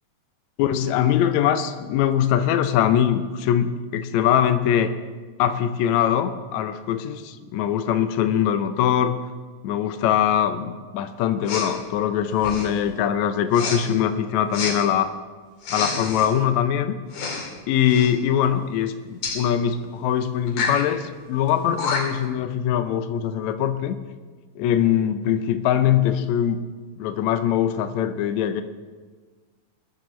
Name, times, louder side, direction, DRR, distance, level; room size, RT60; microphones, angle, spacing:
voice 1, 0.6-4.9 5.4-9.2 9.6-15.1 15.7-16.9 17.7-24.0 24.5-26.6 27.0-28.6, left 9 dB, 80° left, 9 dB, 1.6 m, -22 dB
Respiratory sounds, 11.5-11.7 12.4-12.8 13.5-13.8 14.5-14.8 15.6-16.3 17.1-17.5 17.8-18.1 19.2-19.4 20.5-20.8 21.5-21.6 21.8-22.3, left 4 dB, 60° left, 3.2 m, -28 dB
21.0 x 12.0 x 3.2 m, 1.4 s
omnidirectional pair, 4.1 m